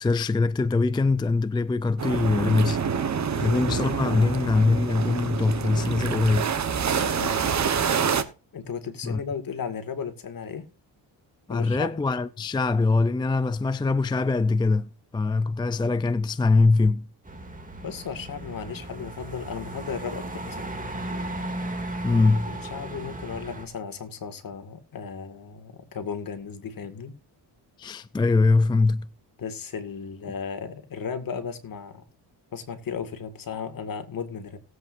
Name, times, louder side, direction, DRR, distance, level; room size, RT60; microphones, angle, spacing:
voice 1, 0.0-2.8 3.4-6.5 9.0-9.2 11.5-17.1 22.0-22.6 27.8-29.1, left 3 dB, 10° left, 0.4 m, -23 dB
sound 1, 2.0-8.2, right 6 dB, 40° right, 1.1 m, -27 dB
voice 2, 7.0-7.7 8.5-10.7 11.5-11.9 17.8-20.8 22.1-27.2 29.4-32.0 32.5-34.6, left 6 dB, 50° left, 2.0 m, -35 dB
sound 2, 17.2-23.6, right 1 dB, 20° right, 2.5 m, -35 dB
18.5 x 8.0 x 2.6 m
cardioid pair, 110°, 43 cm